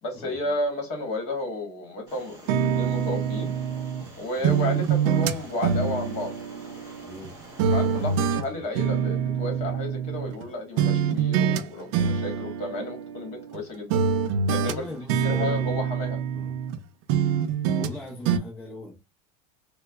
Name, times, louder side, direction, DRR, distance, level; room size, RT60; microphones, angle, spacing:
voice 1, 0.0-3.5 4.2-6.3 7.7-14.0 14.5-14.8 15.2-16.2, left 1 dB, 35° left, 1.4 m, -32 dB
sound 1, 2.1-8.4, right 1 dB, 20° right, 1.9 m, -47 dB
sound 2, 2.5-4.1 4.4-7.3 7.6-10.5 10.8-11.6 11.9-13.6 13.9-16.8 17.1-18.0 18.3-18.4, right 7 dB, 55° right, 0.4 m, -25 dB
voice 2, 7.0-7.4 8.5-8.7 14.6-15.8 16.3-16.5 17.7-19.0, left 2 dB, 10° left, 0.5 m, -40 dB
4.4 x 2.1 x 2.3 m
supercardioid pair, 165°, 19 cm